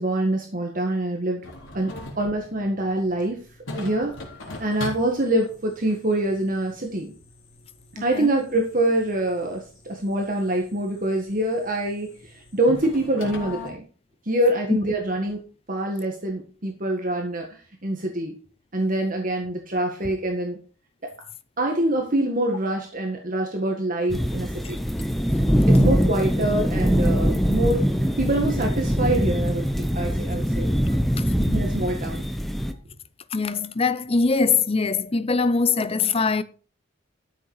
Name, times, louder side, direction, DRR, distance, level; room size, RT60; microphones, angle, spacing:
voice 1, 0.0-1.5 1.7-3.4 3.8-4.2 4.6-7.1 8.0-13.8 14.2-15.4 15.7-17.6 17.8-18.4 18.7-20.6 21.6-24.8 25.7-27.9 28.2-30.7 31.5-32.2, right 1 dB, 40° right, 1.7 m, -25 dB
sound 1, 1.4-13.7, left 2 dB, 70° left, 3.6 m, -41 dB
voice 2, 8.0-8.3 31.2-31.8 33.3-36.4, left 4 dB, 30° left, 0.6 m, -23 dB
sound 2, 24.1-32.7, equal, ahead, 0.9 m, -22 dB
13.0 x 6.7 x 4.8 m
head